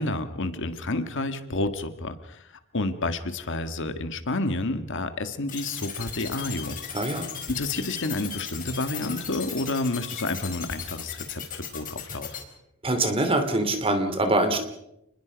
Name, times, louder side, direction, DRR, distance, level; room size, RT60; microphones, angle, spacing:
voice 1, 0.0-6.8 7.5-12.4, left 2 dB, 60° left, 9 dB, 1.7 m, -30 dB
sound 1, 5.5-12.4, left 8 dB, 40° left, 4.7 m, -36 dB
voice 2, 6.9-7.3 12.8-14.6, right 2 dB, 25° right, 7 dB, 2.9 m, -24 dB
29.0 x 21.0 x 5.2 m, 0.82 s
head